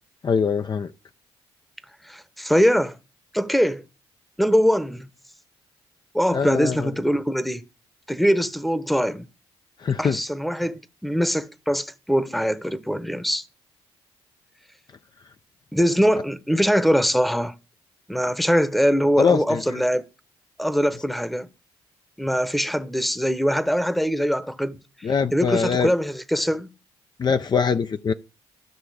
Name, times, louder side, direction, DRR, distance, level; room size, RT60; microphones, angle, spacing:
voice 1, 0.2-0.9 6.3-6.9 9.8-10.2 19.2-19.8 25.0-25.9 27.2-28.1, left 6 dB, 40° left, 0.5 m, -23 dB
voice 2, 2.0-3.0 3.3-3.8 4.4-5.1 6.1-7.6 8.1-9.3 10.0-13.4 15.7-17.5 18.1-20.0 20.6-21.5 22.2-26.7, equal, ahead, 1.0 m, -22 dB
13.0 x 5.8 x 4.9 m
supercardioid pair, 55°, 11 cm